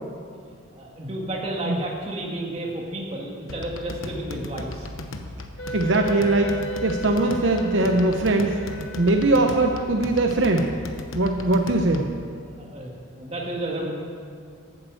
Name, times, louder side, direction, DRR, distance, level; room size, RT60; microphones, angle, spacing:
voice 1, 0.7-5.2 5.7-5.8 12.6-13.9, right 1 dB, 30° right, -2 dB, 2.0 m, -32 dB
sound 1, 3.5-12.2, left 2 dB, 80° left, 1.0 m, -37 dB
Wind instrument woodwind instrument, 5.6-10.8, right 2 dB, 55° left, 2.4 m, -36 dB
voice 2, 5.7-8.6 9.0-10.7 11.1-12.1, right 2 dB, 65° right, 3 dB, 0.8 m, -21 dB
12.5 x 8.6 x 7.7 m, 2.3 s
head